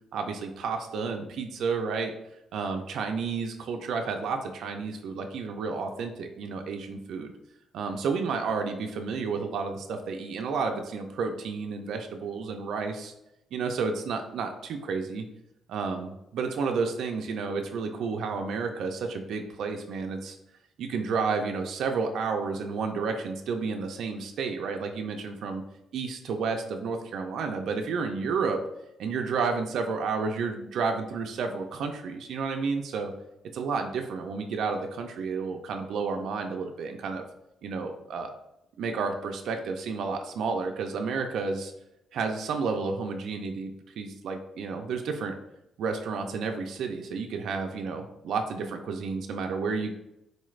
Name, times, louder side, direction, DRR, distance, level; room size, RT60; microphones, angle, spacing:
voice 1, 0.1-2.1 2.5-7.3 7.7-13.1 13.5-15.3 15.7-20.4 20.8-25.6 25.9-28.6 29.0-33.1 33.5-37.2 37.6-38.3 38.8-41.7 42.1-45.3 45.8-49.9, right 4 dB, 65° right, 4 dB, 0.3 m, -31 dB
4.0 x 2.4 x 3.1 m, 0.85 s
cardioid pair, 170°, 0 cm